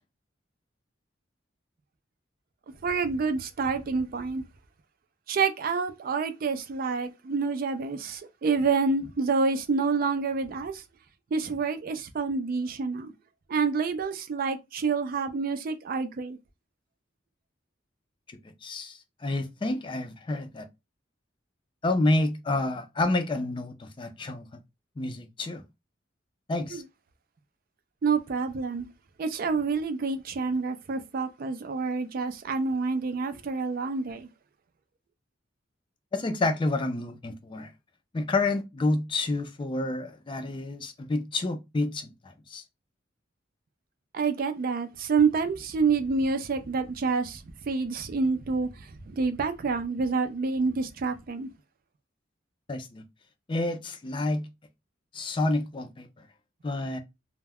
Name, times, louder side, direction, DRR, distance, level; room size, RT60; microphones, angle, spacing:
voice 1, 2.8-4.4 5.3-10.8 11.3-13.1 13.5-16.4 26.7-26.8 28.0-28.9 29.2-34.3 44.1-51.5, right 4 dB, 50° right, 0.4 m, -28 dB
voice 2, 18.3-20.7 21.8-24.6 25.0-25.6 26.5-26.8 36.1-37.7 38.1-42.6 52.7-53.0 53.5-54.5 55.1-56.3 56.6-57.0, left 2 dB, 25° left, 0.4 m, -29 dB
2.2 x 2.0 x 3.4 m
head